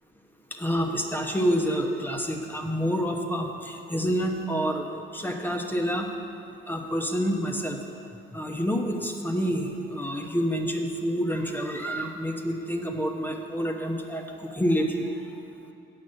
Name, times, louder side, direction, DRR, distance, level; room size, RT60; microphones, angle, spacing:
voice 1, 0.5-4.9 5.1-6.1 6.7-7.8 8.3-15.4, equal, 10° left, 2 dB, 0.9 m, -28 dB
7.9 x 6.1 x 7.4 m, 2.7 s
cardioid pair, 90°, 20 cm